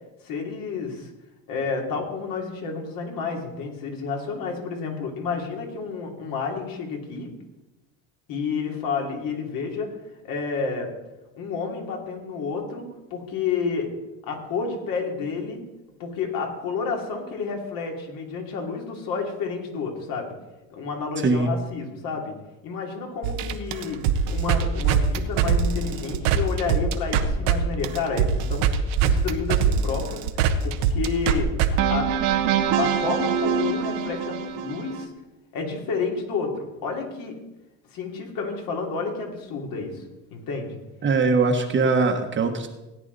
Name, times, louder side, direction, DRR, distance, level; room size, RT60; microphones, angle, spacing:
voice 1, 0.2-1.1 1.5-7.3 8.3-9.9 10.2-10.9 11.3-12.8 13.1-13.9 14.3-15.6 16.0-20.3 20.7-22.3 22.6-24.0 24.3-28.7 29.0-31.5 31.9-32.1 32.8-35.1 35.5-37.3 37.9-40.0 40.3-40.8, left 5 dB, 55° left, 1 dB, 3.1 m, -30 dB
sound 1, 23.2-27.6 27.8-35.1, right 8 dB, 80° right, 1.3 m, -23 dB
voice 2, 41.0-42.7, right 4 dB, 30° right, 5 dB, 1.4 m, -21 dB
17.5 x 9.7 x 4.1 m, 1.0 s
cardioid pair, 130°, 39 cm